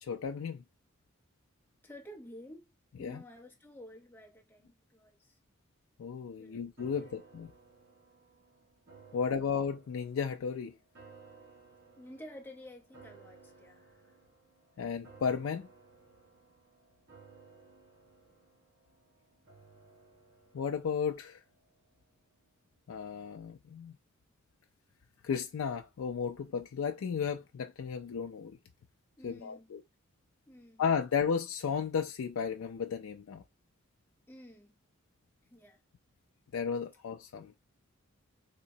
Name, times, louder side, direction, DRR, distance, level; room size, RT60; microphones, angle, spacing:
voice 1, 0.0-0.6 3.0-3.2 6.0-7.5 9.1-10.7 14.8-15.7 20.5-21.4 22.9-23.9 25.2-28.6 29.2-29.8 30.8-33.4 36.5-37.5, left 6 dB, 80° left, 0.4 m, -34 dB
voice 2, 1.8-2.7 3.0-5.4 6.4-6.6 6.9-7.2 9.1-9.4 12.0-14.2 29.2-29.7 30.5-30.8 34.3-34.8 35.5-35.8, left 1 dB, 10° left, 0.8 m, -51 dB
sound 1, 6.8-22.1 22.4-22.5, right 4 dB, 50° right, 1.3 m, -59 dB
3.7 x 2.9 x 2.7 m
head